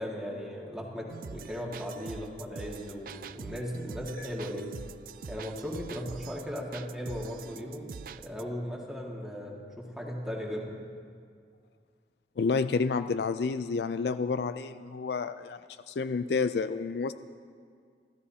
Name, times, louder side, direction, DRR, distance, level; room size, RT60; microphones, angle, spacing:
voice 1, 0.0-4.7 5.3-7.9 8.2-10.9, equal, 5° right, -3 dB, 1.9 m, -37 dB
sound 1, 1.1-8.4, right 6 dB, 50° right, 0.3 m, -44 dB
voice 2, 12.4-15.6 15.9-17.1, left 4 dB, 70° left, 12 dB, 0.4 m, -29 dB
24.5 x 13.5 x 2.8 m, 2.1 s
head